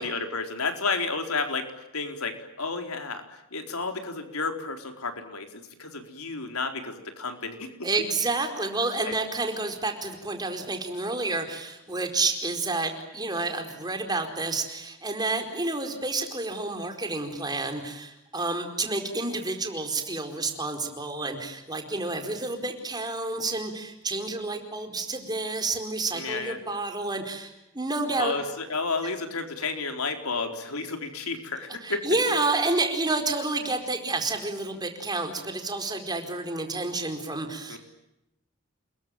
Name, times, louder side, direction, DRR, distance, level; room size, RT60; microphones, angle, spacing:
voice 1, 0.0-1.7 1.9-7.7 9.0-9.1 26.1-26.6 28.2-32.1 37.7-37.8, left 4 dB, 90° left, 5 dB, 4.3 m, -31 dB
voice 2, 7.8-28.4 31.8-37.8, right 3 dB, 20° right, 5 dB, 4.5 m, -29 dB
29.0 x 22.5 x 9.1 m, 0.89 s
head